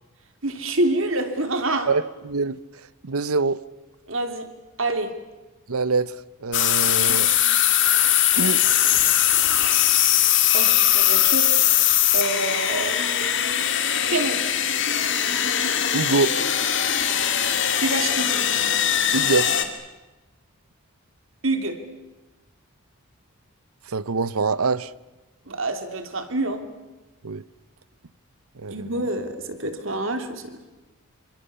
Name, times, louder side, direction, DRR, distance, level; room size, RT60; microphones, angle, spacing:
voice 1, 0.4-1.9 4.1-4.5 4.8-5.1 7.1-7.6 10.5-11.5 12.1-13.0 13.9-14.4 17.8-18.3 21.4-21.8 25.5-26.6 28.7-30.6, right 2 dB, 60° right, 3.0 m, -27 dB
voice 2, 1.8-2.6 3.0-3.6 5.7-6.1 6.4-7.4 7.7-7.8 8.4-8.6 15.9-16.4 19.1-19.6 23.9-24.9 27.2-27.4 28.6-28.9, right 4 dB, 85° right, 0.8 m, -24 dB
sound 1, 6.5-19.6, left 11 dB, 55° left, 2.2 m, -20 dB
27.5 x 26.0 x 7.0 m
head